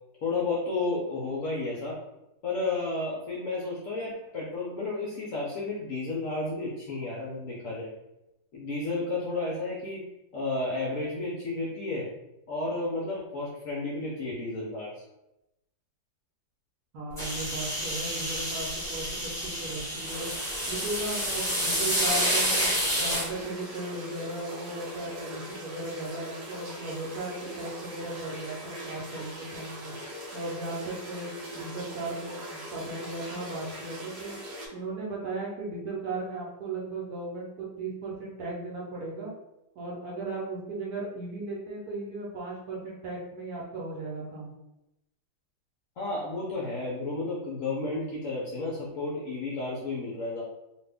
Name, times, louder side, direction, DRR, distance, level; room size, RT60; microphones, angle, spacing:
voice 1, 0.2-2.0 2.4-7.9 8.5-10.0 10.3-12.1 12.5-15.0 46.0-50.4, left 3 dB, 70° left, -5 dB, 0.8 m, -32 dB
voice 2, 16.9-20.3 20.7-29.9 30.3-34.4 34.7-39.3 39.8-44.5, right 2 dB, 65° right, -3 dB, 1.0 m, -36 dB
sound 1, 17.2-23.2, equal, ahead, 0.7 m, -29 dB
sound 2, 20.0-34.7, right 1 dB, 85° right, 0.5 m, -41 dB
2.7 x 2.5 x 3.3 m, 0.91 s
omnidirectional pair, 2.0 m